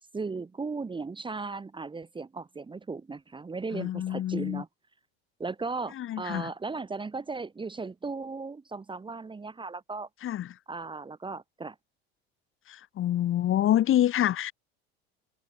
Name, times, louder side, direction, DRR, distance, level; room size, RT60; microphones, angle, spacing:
voice 1, 0.1-4.7 5.4-10.1 10.7-11.7, right 4 dB, 15° right, 1.0 m, -36 dB
voice 2, 3.7-4.6 5.9-6.5 10.2-10.5 12.7-14.5, left 12 dB, 40° left, 1.4 m, -27 dB
hypercardioid pair, 85°, 31 cm